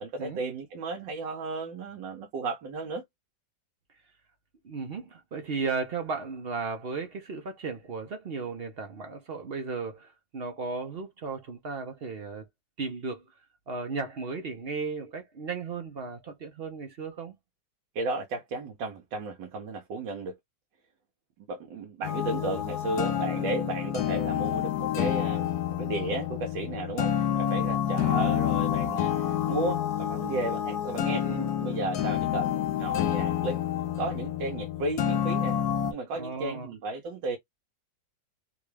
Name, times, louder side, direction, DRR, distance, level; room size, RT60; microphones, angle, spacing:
voice 1, 0.0-3.0 17.9-20.3 21.5-25.5 25.8-31.3 31.6-33.6 34.0-35.6 35.9-37.4, right 3 dB, 90° right, 1.5 m, -34 dB
voice 2, 4.6-12.5 12.8-13.3 13.7-17.4 30.2-30.5 31.1-31.5 36.1-36.7, right 4 dB, 60° right, 0.6 m, -35 dB
sound 1, 22.0-35.9, left 10 dB, 70° left, 1.1 m, -28 dB
3.7 x 2.3 x 3.2 m
omnidirectional pair, 1.9 m